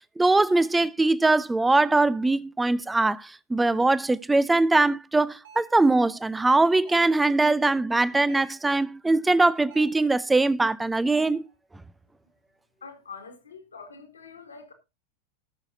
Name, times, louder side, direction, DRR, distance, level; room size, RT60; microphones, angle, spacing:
voice 1, 0.2-11.5, right 2 dB, 10° right, 0.5 m, -22 dB
sound 1, 5.4-5.8 6.9-7.3 8.3-8.7 9.7-10.1 11.1-11.5, right 6 dB, 65° right, 3.7 m, -49 dB
voice 2, 12.8-14.7, left 5 dB, 75° left, 2.2 m, -44 dB
18.5 x 6.4 x 2.7 m
figure-of-eight pair, 90°, 0 cm